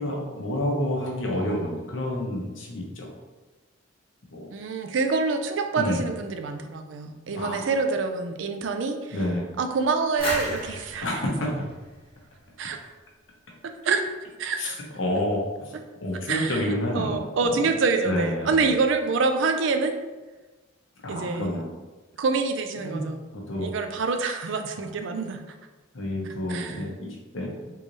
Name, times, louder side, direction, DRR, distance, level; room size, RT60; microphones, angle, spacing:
voice 1, 0.0-3.1 4.3-4.5 5.8-6.0 7.4-7.6 9.1-9.4 11.0-11.5 14.6-15.7 16.0-17.7 18.0-18.7 21.0-21.7 22.8-23.1 23.3-23.7 25.9-27.7, left 1 dB, 80° left, 0 dB, 0.8 m, -29 dB
voice 2, 1.2-1.8 4.5-9.2 9.6-11.2 12.6-12.8 13.8-14.0 14.4-14.8 16.3-16.6 16.9-20.0 21.1-21.6 22.2-23.2 23.6-25.4 26.5-26.8, right 4 dB, 70° right, 6 dB, 0.4 m, -26 dB
sound 1, 10.2-12.9, equal, 30° left, 1.3 m, -34 dB
3.7 x 3.1 x 2.6 m, 1.2 s
head